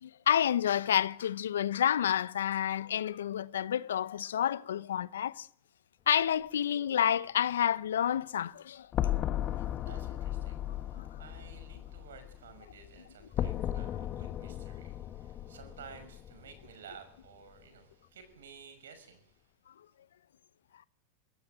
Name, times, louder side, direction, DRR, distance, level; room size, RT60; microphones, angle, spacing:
voice 1, 0.0-5.5 6.1-8.9 10.9-11.0, left 10 dB, 80° left, 1.0 m, -29 dB
sound 1, 8.9-16.9, left 11 dB, 40° left, 1.5 m, -36 dB
voice 2, 9.3-19.4, right 6 dB, 80° right, 5.9 m, -53 dB
22.0 x 16.0 x 8.9 m
hypercardioid pair, 105°, 0 cm